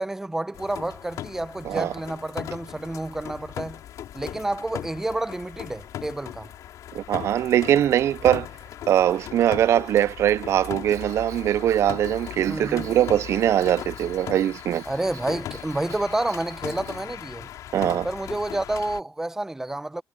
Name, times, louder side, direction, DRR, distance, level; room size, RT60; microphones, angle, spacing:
voice 1, 0.0-3.8 4.1-6.5 12.5-12.9 14.9-17.5 18.0-20.0, right 2 dB, 10° right, 0.7 m, -29 dB
sound 1, 0.5-19.0, left 11 dB, 75° left, 4.8 m, -38 dB
voice 2, 6.9-8.5 8.9-14.8 17.7-18.1, right 11 dB, 55° right, 0.4 m, -22 dB
Bell, 10.9-17.1, right 12 dB, 75° right, 7.7 m, -50 dB
cardioid pair, 170°, 6 cm